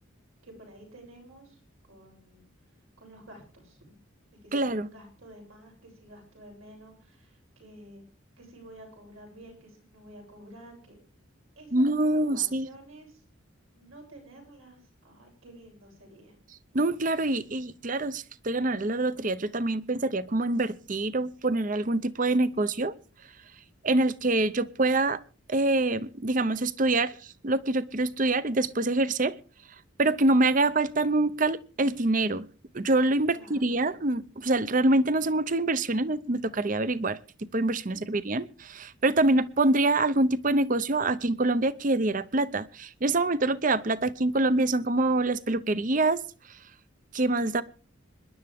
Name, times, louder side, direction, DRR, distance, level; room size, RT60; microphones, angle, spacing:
voice 1, 0.4-1.6 1.9-2.5 3.0-3.8 4.4-8.0 8.4-11.0 11.6-13.2 13.7-16.4 33.3-33.7 37.9-38.2, right 1 dB, 85° right, 7.7 m, -51 dB
voice 2, 4.5-4.9 11.7-12.7 16.7-22.9 23.8-25.2 25.5-29.4 30.0-32.5 32.7-46.2 47.1-47.6, right 2 dB, 40° right, 0.7 m, -25 dB
26.0 x 11.0 x 3.6 m
head